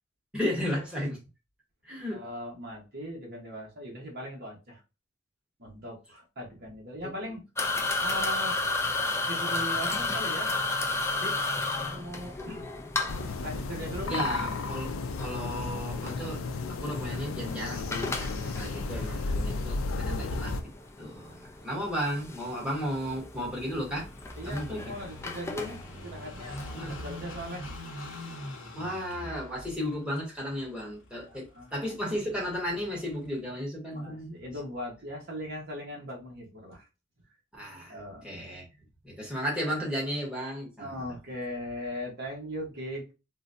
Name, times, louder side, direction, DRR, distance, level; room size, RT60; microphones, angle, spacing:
voice 1, 0.3-1.2 1.8-2.2 14.1-14.9 15.2-16.4 16.8-20.6 21.0-24.1 24.4-24.8 26.7-26.9 28.7-34.4 37.5-37.9 38.2-38.7 39.0-40.9, equal, 5° right, 1.1 m, -34 dB
voice 2, 2.1-4.8 5.6-7.4 8.0-8.7 9.1-10.5 11.2-11.5 11.8-12.7 13.4-14.2 24.4-27.7 31.2-31.7 33.9-36.9 37.9-38.3 40.8-43.1, equal, 55° right, 1.1 m, -39 dB
sound 1, 7.6-27.0, left 3 dB, 15° left, 0.4 m, -34 dB
sound 2, 13.1-20.6, left 3 dB, 85° left, 0.4 m, -33 dB
Car passing by / Idling, 22.8-33.4, left 1 dB, 70° left, 0.8 m, -45 dB
3.7 x 2.2 x 2.6 m
head